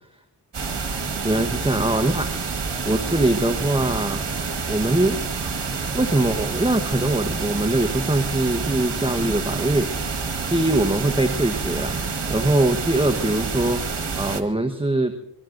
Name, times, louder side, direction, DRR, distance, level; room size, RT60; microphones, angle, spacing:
sound 1, 0.5-14.4, right 4 dB, 85° right, 1.5 m, -28 dB
voice 1, 1.2-2.3 2.9-4.2 4.7-5.2 5.4-5.6 5.9-9.9 10.5-12.0 12.3-15.1, right 1 dB, 15° right, 5 dB, 1.1 m, -22 dB
22.5 x 22.5 x 2.6 m, 0.84 s
cardioid pair, 45°, 41 cm